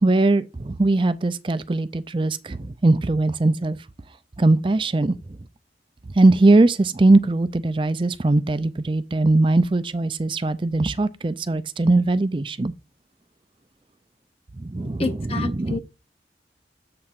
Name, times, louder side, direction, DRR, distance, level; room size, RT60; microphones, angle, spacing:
voice 1, 0.0-3.8 4.4-5.2 6.2-12.7 14.6-15.8, right 2 dB, 30° right, 0.4 m, -20 dB
voice 2, 14.8-15.8, left 3 dB, 30° left, 0.7 m, -29 dB
7.6 x 3.5 x 5.8 m
head